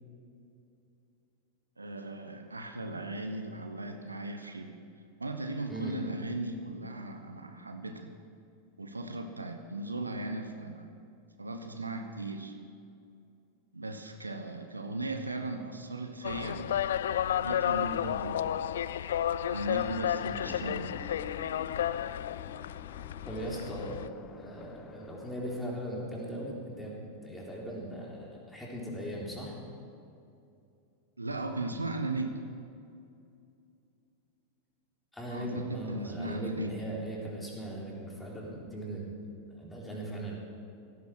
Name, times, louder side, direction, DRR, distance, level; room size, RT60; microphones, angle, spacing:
voice 1, 1.8-4.7 5.2-8.1 8.8-10.9 11.4-12.5 13.7-17.0 17.2-18.7 19.5-21.0 31.2-32.5 35.3-36.7, right 2 dB, 80° right, 6 dB, 1.1 m, -37 dB
sound 1, 16.2-24.1, left 10 dB, 60° left, 0.3 m, -32 dB
sound 2, 20.3-26.0, left 7 dB, 30° left, 0.8 m, -49 dB
voice 2, 23.3-29.6 35.1-39.1 39.6-40.4, right 1 dB, 10° left, -3 dB, 3.7 m, -39 dB
16.5 x 14.5 x 4.7 m, 2.5 s
figure-of-eight pair, 90°, 0 cm